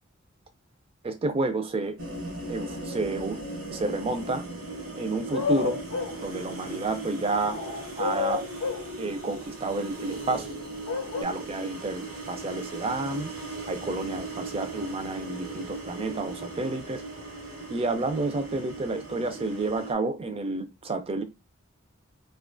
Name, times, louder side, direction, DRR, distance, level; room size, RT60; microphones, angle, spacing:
voice 1, 1.0-2.0 2.5-3.4 3.7-4.5 5.0-5.8 6.2-7.6 8.0-8.5 9.0-10.5 11.2-13.3 13.7-17.0 17.7-21.2, right 2 dB, 25° right, 0.4 m, -30 dB
sound 1, 2.0-19.9, right 2 dB, 70° right, 0.7 m, -38 dB
sound 2, 5.3-6.2 7.5-8.9 10.9-11.2, left 5 dB, 75° left, 0.5 m, -30 dB
2.4 x 2.3 x 2.4 m
head